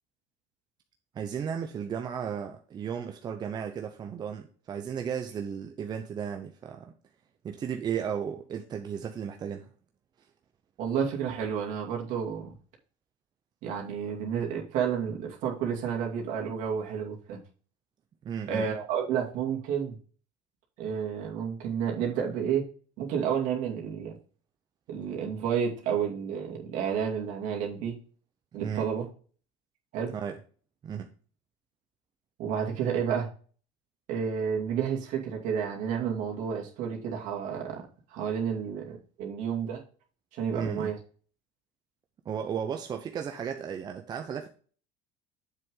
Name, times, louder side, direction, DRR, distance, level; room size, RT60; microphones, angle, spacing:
voice 1, 1.1-6.9 7.4-9.7 18.2-18.7 28.6-28.9 30.1-30.4 30.8-31.1 40.5-40.9 42.2-44.5, right 7 dB, 30° right, 0.7 m, -34 dB
voice 2, 10.8-12.5 13.6-17.4 18.5-20.0 20.8-22.7 23.0-24.2 24.9-28.0 28.5-29.1 29.9-30.1 32.4-33.3 34.1-39.8 40.3-41.0, right 7 dB, 60° right, 2.4 m, -30 dB
7.6 x 6.2 x 3.8 m
cardioid pair, 140°, 14 cm